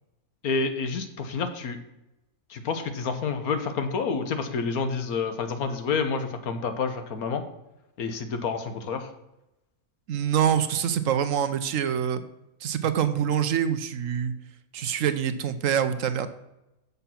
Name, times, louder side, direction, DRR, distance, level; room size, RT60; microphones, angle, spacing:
voice 1, 0.4-1.8 2.5-7.4 8.0-9.1, left 5 dB, 80° left, 8 dB, 1.5 m, -29 dB
voice 2, 10.1-12.2 12.6-14.3 14.7-16.3, right 9 dB, 65° right, 11 dB, 1.0 m, -25 dB
7.0 x 6.9 x 5.7 m, 0.93 s
omnidirectional pair, 1.6 m